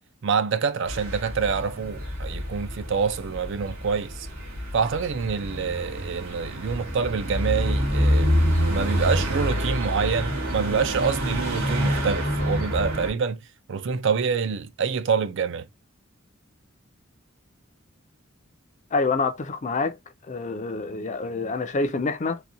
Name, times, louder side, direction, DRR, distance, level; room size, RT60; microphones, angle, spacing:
voice 1, 0.2-4.3 4.7-8.3 8.7-13.4 13.7-15.7, right 5 dB, 60° right, 0.5 m, -26 dB
sound 1, 0.9-13.1, equal, 80° right, 1.7 m, -27 dB
voice 2, 18.9-20.0 20.3-22.4, left 3 dB, 35° left, 0.5 m, -27 dB
4.0 x 2.2 x 2.7 m
head